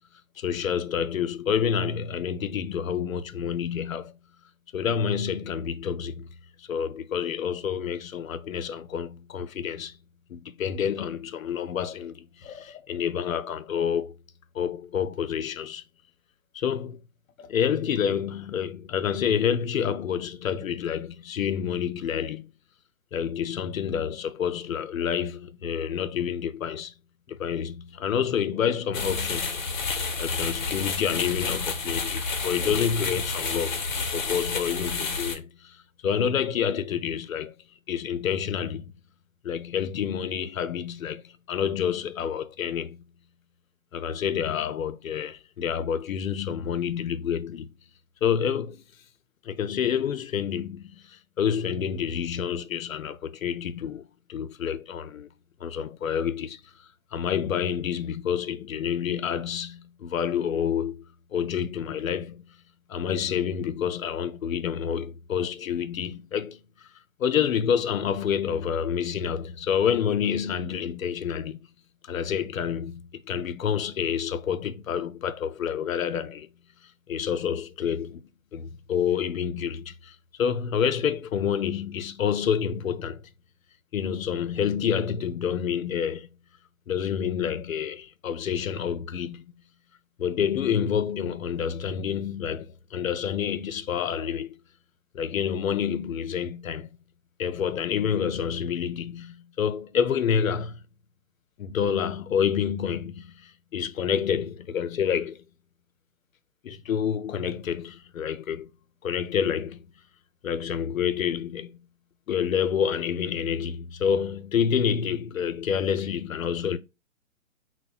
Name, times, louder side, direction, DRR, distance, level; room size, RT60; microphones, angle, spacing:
voice 1, 0.4-4.2 4.7-9.9 10.3-14.2 14.5-15.8 16.5-17.0 17.4-22.5 23.1-26.9 27.3-29.6 30.2-33.8 34.1-35.8 36.0-37.5 37.9-38.8 39.4-43.0 43.9-47.7 48.2-48.8 49.5-55.3 55.6-56.6 57.1-62.4 62.9-66.6 67.2-71.6 72.1-76.5 77.1-83.2 83.9-86.3 86.9-89.4 90.2-94.6 95.1-96.9 97.4-100.8 101.6-105.4 106.6-108.7 109.0-109.8 110.4-111.7 112.3-116.8, left 8 dB, 80° left, 0.5 m, -28 dB
sound 1, 28.9-35.4, left 4 dB, 35° left, 0.6 m, -30 dB
5.9 x 2.0 x 2.3 m
figure-of-eight pair, 135°, 41 cm